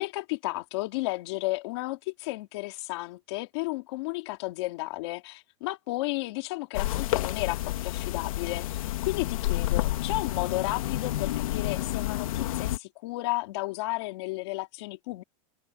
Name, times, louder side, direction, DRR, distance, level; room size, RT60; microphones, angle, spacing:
voice 1, 0.0-15.2, left 21 dB, 50° left, 3.1 m, -33 dB
sound 1, 6.7-12.8, left 15 dB, 80° left, 1.9 m, -30 dB
supercardioid pair, 180°, 18 cm